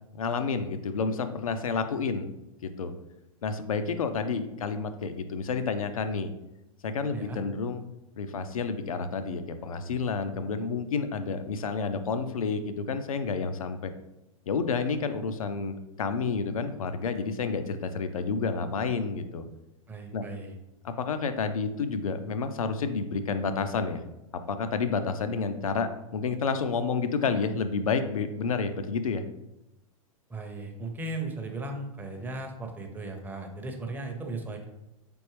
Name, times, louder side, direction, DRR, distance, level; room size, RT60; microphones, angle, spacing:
voice 1, 0.1-2.3 2.6-2.9 3.4-6.3 6.8-7.8 8.2-13.9 14.5-19.4 20.1-20.2 20.8-24.0 24.3-29.2, left 5 dB, 75° left, 9 dB, 0.5 m, -30 dB
voice 2, 19.9-20.6 30.3-34.7, right 2 dB, 10° right, 3 dB, 0.6 m, -37 dB
4.1 x 3.5 x 3.1 m, 0.91 s
figure-of-eight pair, 100°, 18 cm